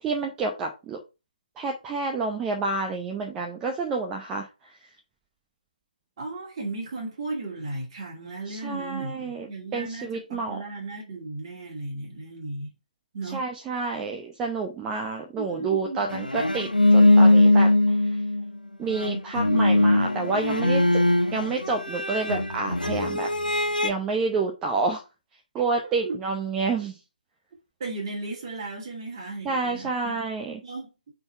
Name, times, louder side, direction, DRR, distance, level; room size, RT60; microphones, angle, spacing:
voice 1, 0.0-1.0 1.6-4.5 8.5-10.6 13.3-17.7 18.8-21.0 21.3-23.3 23.8-25.0 25.5-27.0 29.4-30.6, right 4 dB, 10° right, 0.7 m, -29 dB
voice 2, 6.2-12.7 13.1-13.4 15.4-16.1 25.6-26.2 27.8-30.2 30.6-31.1, right 2 dB, 35° right, 2.5 m, -35 dB
sound 1, 16.1-18.6 18.9-23.9, left 2 dB, 80° left, 1.1 m, -21 dB
7.7 x 4.0 x 4.4 m
figure-of-eight pair, 145°, 5 cm